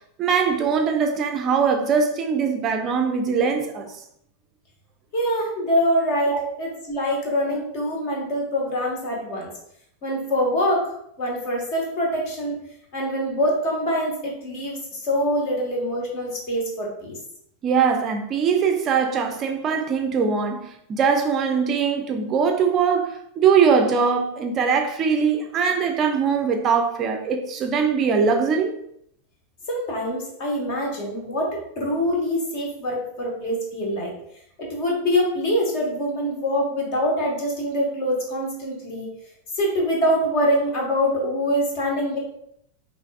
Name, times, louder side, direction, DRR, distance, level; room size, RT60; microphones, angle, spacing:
voice 1, 0.2-3.9 6.3-6.5 17.6-28.7, right 6 dB, 30° right, 0.5 m, -21 dB
voice 2, 5.1-9.5 10.0-10.9 11.2-12.5 12.9-17.2 29.7-34.1 34.6-39.1 39.5-42.2, equal, 45° left, 1.3 m, -24 dB
5.6 x 2.5 x 2.4 m
figure-of-eight pair, 90°, 0 cm